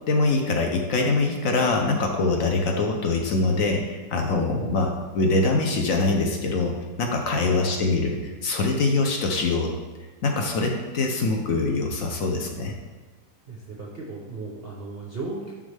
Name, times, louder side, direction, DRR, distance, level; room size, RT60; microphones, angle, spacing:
voice 1, 0.1-4.9 5.1-9.7 10.2-12.7, left 3 dB, 60° left, 2 dB, 0.9 m, -23 dB
voice 2, 7.3-8.0 13.5-15.5, right 3 dB, 60° right, -3 dB, 0.6 m, -37 dB
11.0 x 3.9 x 3.3 m, 1.4 s
omnidirectional pair, 2.2 m